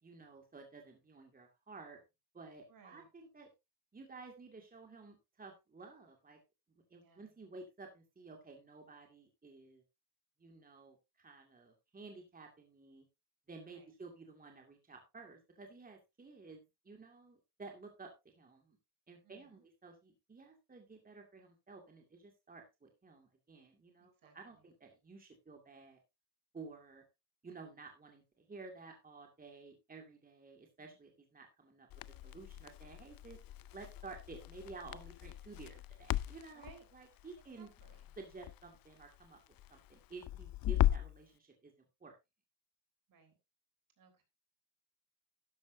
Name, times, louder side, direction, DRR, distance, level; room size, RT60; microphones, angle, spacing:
voice 1, 0.0-2.0 2.3-3.5 3.9-6.4 6.9-9.8 10.4-13.1 13.5-18.8 19.1-26.0 26.5-27.0 27.4-31.9 32.2-33.4 33.7-37.7 38.2-39.4 39.7-41.7 42.0-42.1, right 3 dB, 20° right, 3 dB, 2.3 m, -53 dB
voice 2, 2.7-3.1 7.0-7.3 13.7-13.9 19.2-19.6 24.0-24.6 30.8-31.0 36.5-36.9 37.6-38.1 43.1-43.3 44.0-44.2, right 5 dB, 60° right, 6 dB, 3.9 m, -62 dB
Crackle, 31.9-41.2, left 14 dB, 65° left, 0.5 m, -38 dB
12.5 x 10.5 x 2.7 m, 0.24 s
cardioid pair, 140°, 38 cm